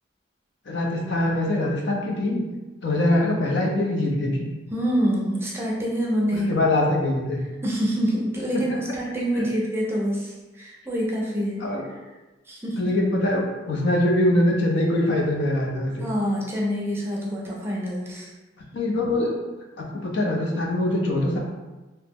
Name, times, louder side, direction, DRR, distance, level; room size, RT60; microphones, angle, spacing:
voice 1, 0.7-2.4 2.8-4.5 6.3-7.4 9.4-9.5 11.6-11.8 12.8-16.1 18.7-19.3 19.8-21.4, left 1 dB, 65° left, -1 dB, 0.5 m, -23 dB
voice 2, 4.7-6.5 7.6-11.6 12.5-12.9 16.0-18.3, equal, 15° right, -4 dB, 0.5 m, -26 dB
2.8 x 2.0 x 3.4 m, 1.2 s
head